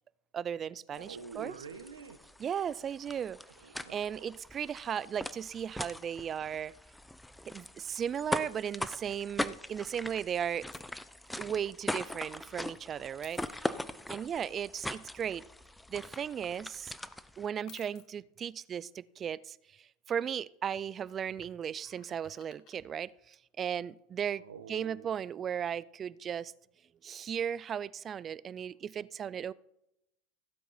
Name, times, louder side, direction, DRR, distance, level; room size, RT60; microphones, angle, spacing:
voice 1, 0.3-1.5 2.4-3.4 3.9-6.7 7.5-10.7 11.4-13.8 14.1-15.4 15.9-17.0 17.4-24.4 24.7-26.5 27.0-29.5, right 8 dB, 35° right, 0.5 m, -36 dB
sound 1, 0.9-17.5, left 1 dB, 5° left, 0.7 m, -41 dB
voice 2, 0.9-2.2 3.1-4.0 24.4-25.1, right 5 dB, 90° right, 1.3 m, -47 dB
sound 2, 10.7-11.0 12.1-12.4 13.2-13.6 16.0-16.7 17.6-18.1 21.4-22.8 24.7-24.8, left 12 dB, 50° left, 1.2 m, -59 dB
16.0 x 8.2 x 4.4 m
hypercardioid pair, 85°, 0 cm